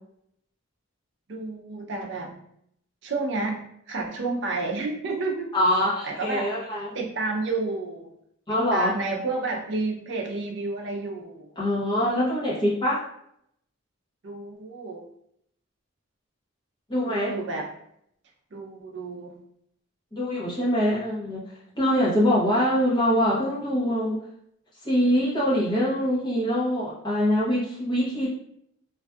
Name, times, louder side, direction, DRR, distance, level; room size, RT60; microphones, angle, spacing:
voice 1, 1.3-2.4 3.0-5.5 6.0-6.5 6.9-8.1 8.7-11.5 14.2-15.0 17.1-17.7 18.5-19.4, right 3 dB, 60° right, 1 dB, 0.5 m, -30 dB
voice 2, 5.5-6.9 8.5-8.9 11.6-13.0 16.9-17.3 20.1-21.4 21.8-24.2 24.8-28.3, equal, 20° left, -6 dB, 0.7 m, -24 dB
2.5 x 2.3 x 2.2 m, 0.71 s
head